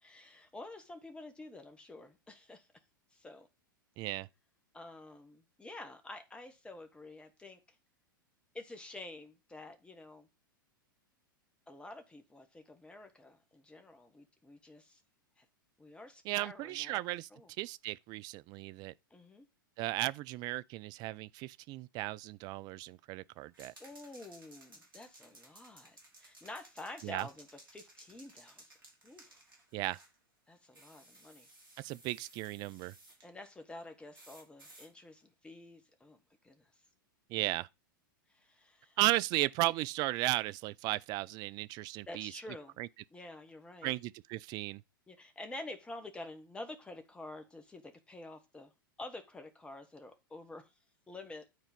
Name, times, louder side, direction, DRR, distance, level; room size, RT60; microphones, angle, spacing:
voice 1, 0.0-2.7 3.1-3.5 4.7-7.6 8.5-10.3 11.7-15.0 15.4-15.5 15.8-17.0 17.3-17.5 19.1-19.5 23.8-28.7 29.0-29.4 30.5-31.5 33.2-36.2 36.4-36.7 37.4-37.5 38.3-39.0 39.6-39.7 42.1-42.8 43.1-43.9 45.1-48.7 49.0-50.7 51.1-51.4, left 2 dB, 10° left, 1.3 m, -49 dB
voice 2, 4.0-4.3 16.3-17.3 17.6-18.9 19.8-23.7 27.0-27.3 29.7-30.0 31.8-32.9 37.3-37.7 39.0-42.3 42.8-42.9 43.8-44.8, right 18 dB, 35° right, 0.4 m, -35 dB
sound 1, 23.5-30.2 30.7-33.3 34.1-34.9, right 2 dB, 75° right, 3.3 m, -58 dB
9.4 x 4.4 x 5.2 m
figure-of-eight pair, 95°, 11 cm